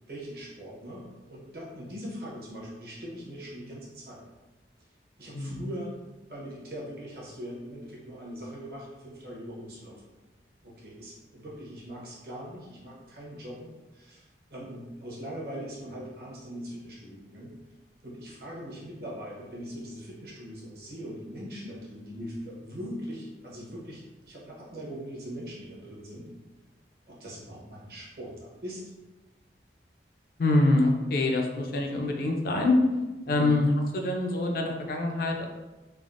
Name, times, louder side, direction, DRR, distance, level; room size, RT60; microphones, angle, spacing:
voice 1, 0.1-4.2 5.2-10.0 10.6-17.5 18.0-26.3 27.1-28.9 33.3-33.6, equal, 55° right, -5 dB, 0.8 m, -41 dB
voice 2, 5.3-5.7 30.4-32.8 33.3-33.7 33.9-35.5, left 2 dB, 55° left, 2 dB, 0.4 m, -25 dB
3.3 x 2.0 x 2.4 m, 1.1 s
head